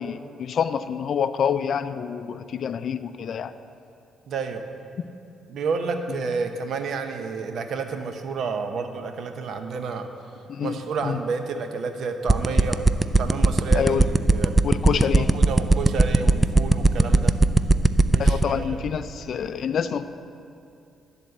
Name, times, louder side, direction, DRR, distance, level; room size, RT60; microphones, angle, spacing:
voice 1, 0.0-3.5 10.5-11.2 13.7-14.1 14.6-15.3 18.2-20.0, left 7 dB, 60° left, 12 dB, 0.4 m, -27 dB
voice 2, 4.3-4.7 5.5-10.1 10.6-12.8 13.2-14.0 14.3-14.5 14.9-17.3 18.1-18.8, right 5 dB, 65° right, 6 dB, 0.8 m, -30 dB
sound 1, 12.3-18.4, right 2 dB, 15° right, 0.3 m, -14 dB
12.0 x 4.1 x 7.7 m, 2.6 s
cardioid pair, 90°, 0 cm